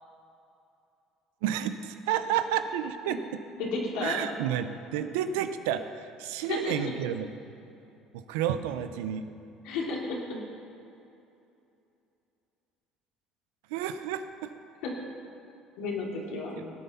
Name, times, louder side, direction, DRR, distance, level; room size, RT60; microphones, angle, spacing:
voice 1, 1.4-3.4 4.0-7.3 8.1-9.3 13.7-14.5, right 10 dB, 90° right, 10 dB, 0.8 m, -31 dB
voice 2, 3.6-4.2 6.5-6.9 9.6-10.4 14.8-14.9 15.8-16.7, left 3 dB, 80° left, -2 dB, 3.0 m, -32 dB
18.0 x 8.8 x 5.7 m, 2.8 s
supercardioid pair, 90°, 0 cm